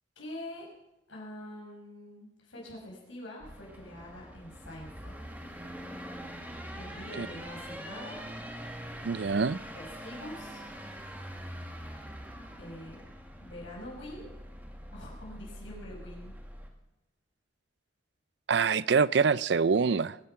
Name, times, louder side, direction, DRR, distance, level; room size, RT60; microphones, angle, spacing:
voice 1, 0.2-0.7 1.1-5.1 6.8-8.2 9.7-10.6 12.6-13.0 13.4-14.3 14.9-16.4, left 1 dB, 90° left, -3 dB, 5.7 m, -45 dB
sound 1, 3.4-16.7, equal, 10° right, 1.9 m, -44 dB
voice 2, 9.0-9.6 18.5-20.2, right 5 dB, 65° right, 19 dB, 0.4 m, -25 dB
22.0 x 9.6 x 5.8 m, 0.91 s
head